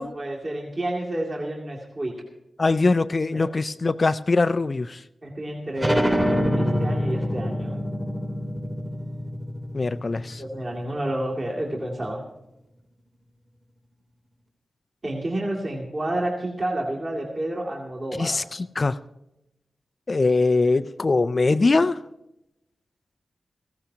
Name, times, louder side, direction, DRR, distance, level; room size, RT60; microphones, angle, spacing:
voice 1, 0.0-2.1 3.3-3.5 5.2-6.1 6.6-7.8 10.4-12.2 15.0-18.4 21.1-21.2, right 1 dB, 35° right, -3 dB, 2.3 m, -30 dB
voice 2, 2.6-5.0 9.7-10.4 18.2-18.4 18.8-18.9 20.1-22.0, left 3 dB, 30° left, 13 dB, 0.4 m, -22 dB
sound 1, 5.8-11.0, equal, 10° right, 1.5 m, -26 dB
19.0 x 16.0 x 2.8 m, 0.89 s
wide cardioid pair, 170°, 0 cm